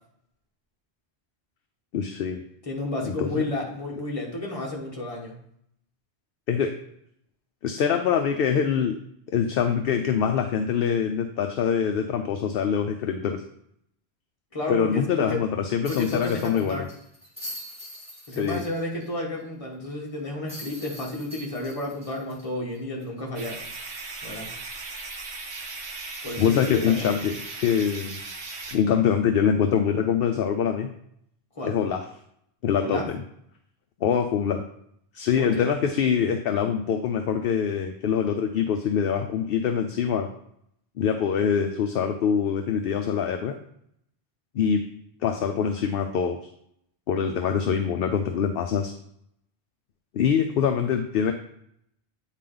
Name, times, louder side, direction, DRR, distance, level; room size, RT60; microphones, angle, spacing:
voice 1, 1.9-2.4 3.0-3.4 6.5-6.7 7.6-8.9 9.3-13.4 14.7-16.9 18.3-18.6 26.4-28.2 28.7-30.9 31.6-32.0 32.6-33.2 34.0-34.6 35.1-40.3 41.0-43.6 44.5-44.9 45.2-46.4 47.1-48.9 50.1-51.3, left 7 dB, 65° left, 5 dB, 0.7 m, -24 dB
voice 2, 2.6-5.4 14.5-15.4 15.9-16.9 18.3-23.6 24.2-24.5 26.2-27.2 31.5-31.8 32.8-33.1 35.4-35.7, left 2 dB, 30° left, -2 dB, 1.4 m, -31 dB
sound 1, 15.8-19.1 19.4-19.5 20.5-23.2 23.6-23.7 25.8-26.0, equal, 5° right, 2.3 m, -43 dB
sound 2, 23.4-28.8, right 3 dB, 75° right, 1.3 m, -37 dB
9.1 x 4.1 x 3.8 m, 0.72 s
omnidirectional pair, 1.1 m